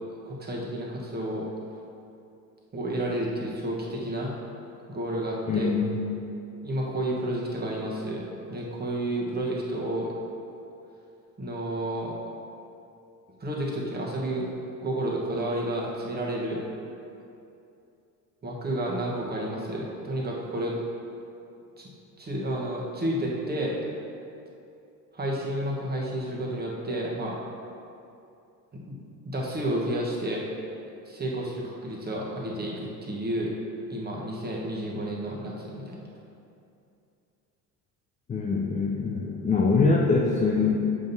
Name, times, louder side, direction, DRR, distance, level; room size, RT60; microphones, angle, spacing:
voice 1, 0.3-1.4 2.7-4.4 4.9-5.7 6.6-8.2 8.5-10.1 11.4-12.1 13.4-14.5 14.8-16.6 18.4-20.7 21.8-21.9 22.2-23.8 25.1-27.3 28.7-29.0 29.2-30.4 31.1-33.5 33.9-36.1, right 1 dB, 20° right, -3 dB, 1.2 m, -31 dB
voice 2, 5.5-5.9 38.3-41.0, left 4 dB, 15° left, -2 dB, 0.4 m, -23 dB
7.5 x 5.2 x 2.7 m, 2.6 s
figure-of-eight pair, 60°, 48 cm